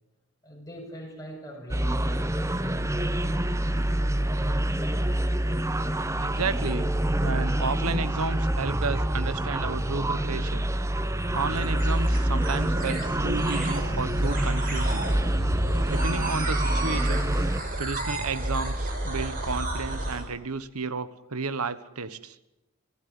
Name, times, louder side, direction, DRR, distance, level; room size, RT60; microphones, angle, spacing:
voice 1, 0.4-2.5 3.4-3.8, equal, 15° left, 0 dB, 7.5 m, -42 dB
sound 1, 1.7-17.6, right 1 dB, 15° right, 0.8 m, -26 dB
voice 2, 6.2-6.9 7.2-10.7 11.3-15.1 15.9-17.3 17.8-22.4, right 4 dB, 90° right, 14 dB, 1.3 m, -32 dB
sound 2, 10.7-20.2, right 1 dB, 40° right, 6.2 m, -31 dB
27.0 x 16.0 x 9.7 m, 0.95 s
head